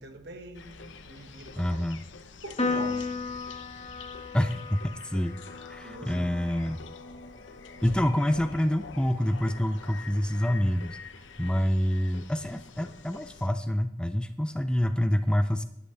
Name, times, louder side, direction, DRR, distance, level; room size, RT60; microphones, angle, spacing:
voice 1, 0.0-1.9 2.4-3.7 5.8-6.3 6.7-6.8, right 2 dB, 60° right, 1.5 m, -44 dB
sound 1, 0.5-13.5, left 4 dB, 75° left, 0.8 m, -46 dB
voice 2, 1.6-2.0 4.3-5.4 5.7-6.8 7.8-11.0 11.4-15.6, equal, 5° left, 0.4 m, -27 dB
Piano, 2.6-9.3, left 3 dB, 35° left, 1.3 m, -36 dB
12.5 x 11.5 x 3.3 m
head